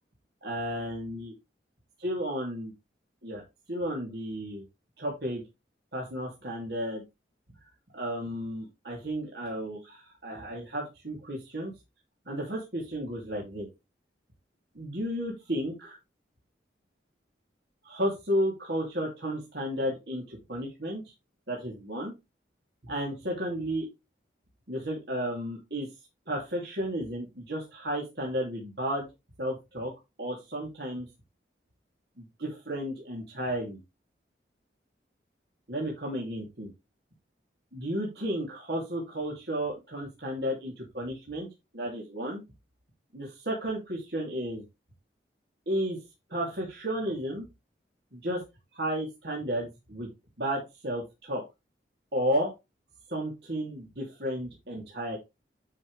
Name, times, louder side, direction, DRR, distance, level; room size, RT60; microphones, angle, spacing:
voice 1, 0.4-1.3 2.0-2.7 3.2-3.4 3.7-4.6 5.0-5.4 5.9-7.0 7.9-11.7 12.3-13.7 14.7-16.0 17.8-21.0 21.5-22.1 22.8-23.9 24.7-25.9 26.3-29.1 29.4-29.9 30.2-31.1 32.2-33.8 35.7-36.7 37.7-41.5 41.7-42.4 43.1-44.6 45.7-46.0 46.3-47.5 48.1-48.4 48.7-50.1 50.4-51.4 52.1-52.5 53.1-55.2, equal, 65° right, -2 dB, 2.9 m, -33 dB
10.5 x 5.5 x 3.3 m, 0.23 s
head